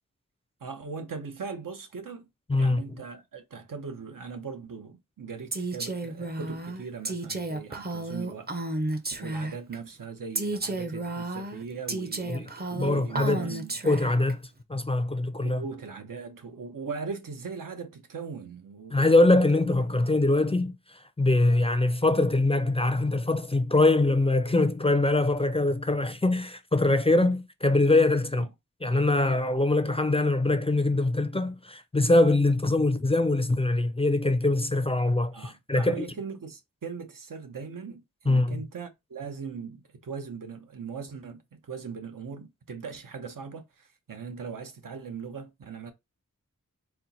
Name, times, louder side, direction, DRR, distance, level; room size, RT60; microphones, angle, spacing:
voice 1, 0.6-2.3 2.6-8.5 9.2-13.8 15.4-19.4 19.9-20.0 28.4-28.5 35.3-45.9, right 5 dB, 80° right, 0.8 m, -40 dB
voice 2, 2.5-2.8 12.3-13.6 13.9-14.4 14.7-15.6 18.9-28.5 28.8-36.0 38.3-38.6, left 2 dB, 20° left, 0.4 m, -23 dB
Female speech woman speaking, 5.5-9.8 10.4-14.3, right 2 dB, 30° right, 0.6 m, -32 dB
4.3 x 2.1 x 4.0 m
wide cardioid pair, 75°, 32 cm